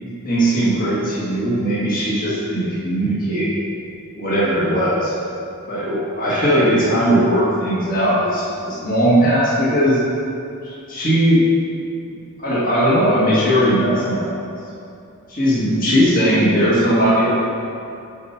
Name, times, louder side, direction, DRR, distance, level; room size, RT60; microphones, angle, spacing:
voice 1, 0.0-3.5 4.2-5.1 5.7-10.0 10.6-11.4 12.1-14.4 15.3-17.3, equal, 40° left, -8 dB, 1.6 m, -18 dB
7.9 x 4.5 x 5.8 m, 2.6 s
head